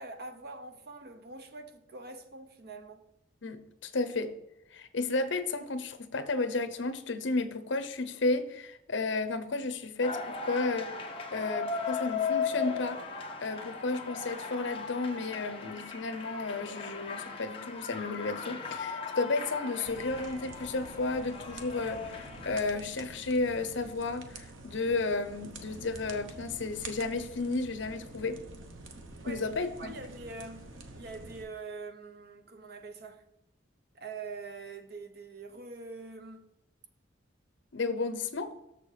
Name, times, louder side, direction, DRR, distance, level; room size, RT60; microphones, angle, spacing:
voice 1, 0.0-3.0 29.2-29.5 29.8-33.2 33.9-36.4, right 3 dB, 55° right, 0.8 m, -44 dB
voice 2, 3.4-4.3 4.7-10.9 11.3-13.0 13.4-28.4 29.3-29.9 37.7-38.5, left 3 dB, 70° left, 0.8 m, -32 dB
sound 1, 10.0-22.6, left 5 dB, 30° left, 1.0 m, -37 dB
sound 2, 19.9-31.4, right 2 dB, 90° right, 1.0 m, -47 dB
6.8 x 6.7 x 4.9 m
head